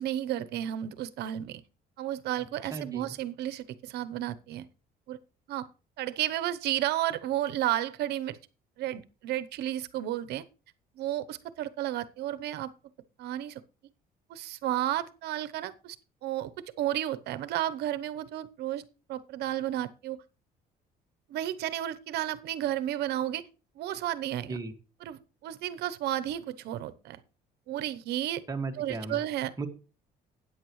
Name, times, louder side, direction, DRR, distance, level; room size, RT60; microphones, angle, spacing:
voice 1, 0.0-1.6 2.0-4.7 5.1-5.2 5.5-5.7 6.0-8.4 8.8-10.4 11.0-12.7 13.2-13.6 14.3-16.0 16.2-16.5 16.8-18.8 19.1-20.2 21.3-23.4 23.8-24.6 25.0-27.2 27.7-28.4 28.8-29.5, right 12 dB, 80° right, 0.9 m, -32 dB
voice 2, 2.7-3.1 24.5-24.7 28.5-29.2 29.6-29.7, right 3 dB, 20° right, 1.9 m, -35 dB
13.5 x 9.4 x 3.2 m
cardioid pair, 110°, 17 cm